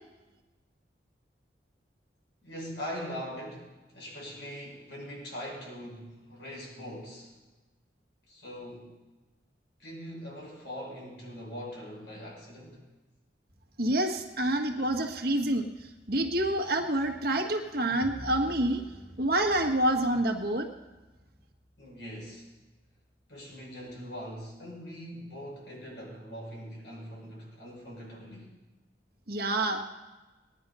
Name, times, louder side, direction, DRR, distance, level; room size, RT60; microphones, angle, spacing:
voice 1, 2.4-7.3 8.3-9.0 9.8-12.8 21.8-22.5 23.3-28.5, equal, 70° left, -3 dB, 5.8 m, -42 dB
voice 2, 13.8-15.7 16.1-18.8 19.2-20.7 29.3-29.8, right 1 dB, 55° right, 4 dB, 1.6 m, -27 dB
Bowed string instrument, 18.0-22.6, equal, 20° right, 1.0 m, -49 dB
19.0 x 10.5 x 5.5 m, 1.2 s
head